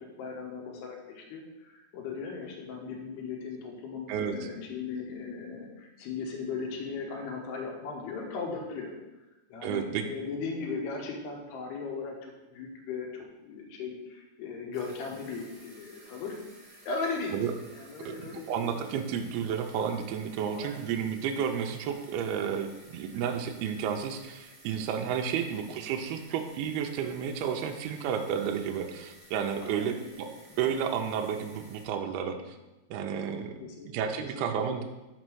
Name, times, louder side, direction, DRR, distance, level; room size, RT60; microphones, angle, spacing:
voice 1, 0.0-8.9 9.5-16.4 16.6-17.4 17.7-19.0 20.5-20.8 25.4-25.5 29.6-30.1 32.3-32.4 33.6-34.8, left 4 dB, 75° left, 1 dB, 3.1 m, -38 dB
voice 2, 4.1-4.5 9.6-10.1 17.3-17.5 18.1-30.3 30.6-32.6 32.9-34.8, right 7 dB, 80° right, 4 dB, 2.3 m, -32 dB
sound 1, 14.7-31.9, right 1 dB, 45° right, 1.2 m, -55 dB
6.6 x 5.3 x 6.2 m, 1.1 s
omnidirectional pair, 4.9 m